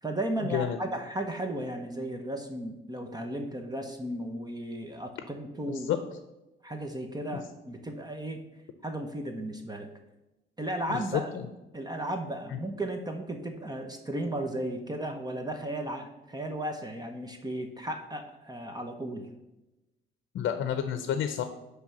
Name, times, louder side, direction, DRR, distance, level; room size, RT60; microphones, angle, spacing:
voice 1, 0.0-5.9 6.6-8.4 8.8-9.9 10.6-11.3 11.7-19.3, right 1 dB, 20° right, 4 dB, 1.0 m, -35 dB
voice 2, 10.9-11.5 12.5-12.6 20.3-21.4, left 9 dB, 70° left, 9 dB, 0.7 m, -30 dB
10.0 x 3.4 x 6.3 m, 0.99 s
cardioid pair, 90°, 20 cm